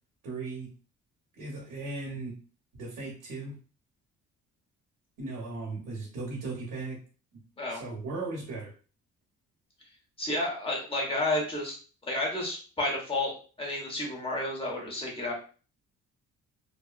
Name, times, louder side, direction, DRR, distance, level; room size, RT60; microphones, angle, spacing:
voice 1, 0.2-0.7 1.4-2.3 2.7-3.6 5.2-7.0 7.7-8.7, right 3 dB, 85° right, -3 dB, 0.9 m, -37 dB
voice 2, 10.2-11.7 12.1-15.3, left 1 dB, 20° left, -2 dB, 1.1 m, -31 dB
2.6 x 2.2 x 2.3 m, 0.39 s
cardioid pair, 90°, 30 cm